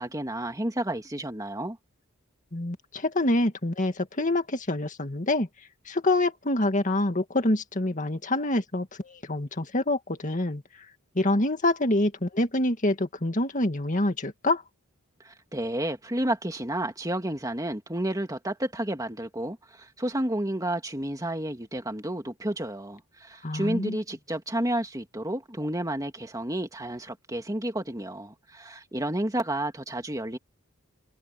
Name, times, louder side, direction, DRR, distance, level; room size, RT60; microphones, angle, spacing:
voice 1, 0.0-1.8 15.2-30.4, right 1 dB, 15° right, 2.6 m, -31 dB
voice 2, 2.5-5.5 5.9-10.6 11.2-14.6 23.4-24.0, left 1 dB, 35° left, 2.0 m, -26 dB
head